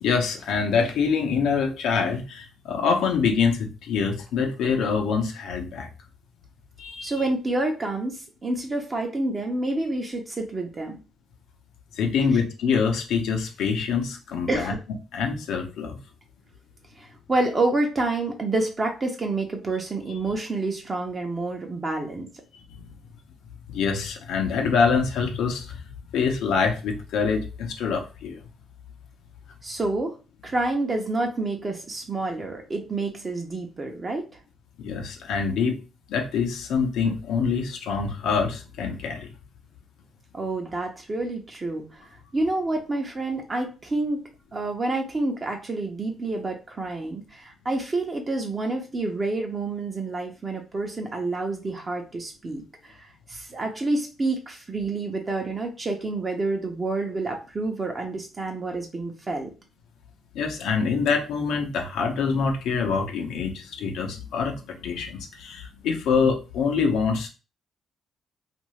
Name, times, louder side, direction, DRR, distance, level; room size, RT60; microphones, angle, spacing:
voice 1, 0.0-5.9 6.8-7.1 11.9-14.7 15.1-16.0 22.7-22.9 23.7-25.8 26.1-28.4 34.8-35.8 36.1-39.3 60.3-67.3, left 5 dB, 80° left, 3 dB, 0.7 m, -25 dB
voice 2, 7.0-11.0 12.2-12.3 14.5-14.8 17.0-22.3 29.6-30.2 30.4-34.3 40.3-42.1 42.3-44.2 44.5-59.5, right 2 dB, 30° right, 2 dB, 0.7 m, -28 dB
2.7 x 2.5 x 3.1 m, 0.32 s
cardioid pair, 90°, 0 cm